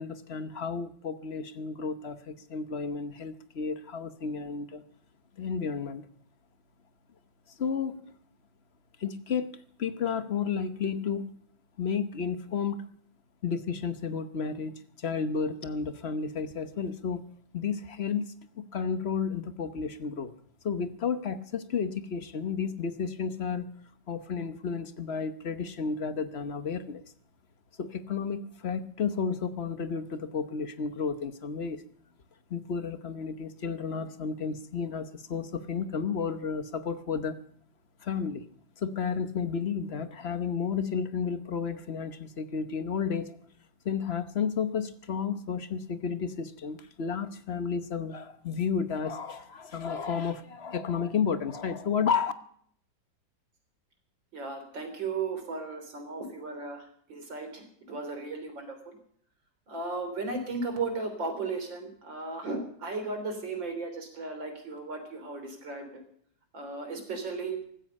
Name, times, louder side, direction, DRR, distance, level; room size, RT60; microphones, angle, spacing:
voice 1, 0.0-4.8 5.3-6.1 7.5-8.0 9.0-11.3 11.8-12.9 13.4-17.2 17.5-20.3 20.6-23.7 24.1-27.0 27.8-31.8 32.5-37.4 38.0-38.5 38.8-43.4 43.8-52.3, left 6 dB, 45° left, 11 dB, 1.0 m, -32 dB
voice 2, 54.3-56.8 57.1-59.0 59.7-66.0 66.5-67.6, right 3 dB, 80° right, 5 dB, 4.2 m, -35 dB
16.0 x 13.0 x 5.4 m, 0.63 s
omnidirectional pair, 2.0 m